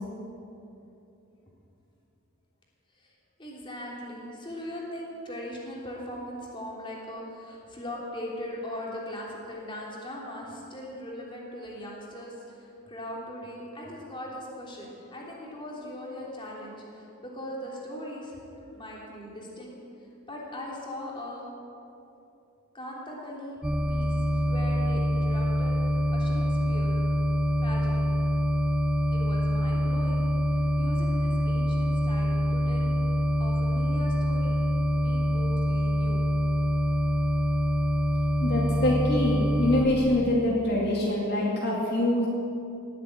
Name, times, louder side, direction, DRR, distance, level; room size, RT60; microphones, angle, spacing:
voice 1, 3.4-21.5 22.7-23.6 23.9-27.0 27.6-28.1 29.1-34.6 34.9-36.2 37.8-37.9, left 1 dB, 25° left, -4 dB, 3.2 m, -40 dB
sound 1, 23.6-39.8, equal, 5° right, 0.6 m, -25 dB
voice 2, 38.4-42.3, left 1 dB, 50° left, -4 dB, 2.2 m, -25 dB
19.0 x 8.3 x 8.8 m, 2.8 s
head